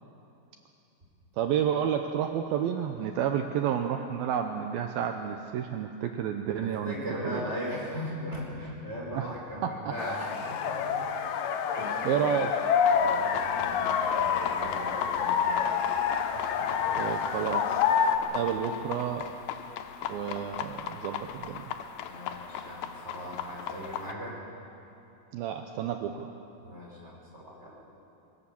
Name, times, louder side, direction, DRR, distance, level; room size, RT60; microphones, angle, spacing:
voice 1, 1.4-7.0 7.2-7.4 9.1-9.3 9.6-9.7 12.0-12.5 17.0-17.8 18.3-19.3 20.1-21.7 25.3-26.3, right 9 dB, 80° right, 5 dB, 2.2 m, -30 dB
voice 2, 6.6-11.0 11.8-12.2 12.9-15.8 16.3-17.2 18.2-18.4 22.0-24.4 26.6-27.8, equal, 15° right, -4 dB, 5.3 m, -39 dB
sound 1, 10.0-18.2, left 7 dB, 70° left, 2.2 m, -27 dB
sound 2, 12.8-24.1, left 9 dB, 85° left, 3.1 m, -38 dB
24.0 x 17.0 x 7.1 m, 2.9 s
omnidirectional pair, 5.1 m